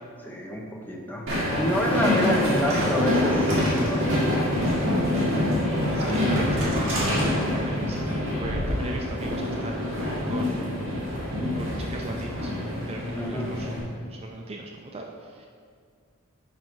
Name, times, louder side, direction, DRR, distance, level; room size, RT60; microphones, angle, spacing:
voice 1, 0.2-1.3 1.5-4.2 13.1-13.5, left 1 dB, 10° left, -1 dB, 0.8 m, -28 dB
Train, 1.3-13.8, left 1 dB, 60° right, 2.0 m, -25 dB
voice 2, 5.9-10.9 11.6-12.5 12.9-15.5, right 2 dB, 25° right, 1 dB, 0.4 m, -39 dB
7.3 x 5.6 x 4.6 m, 2.2 s
head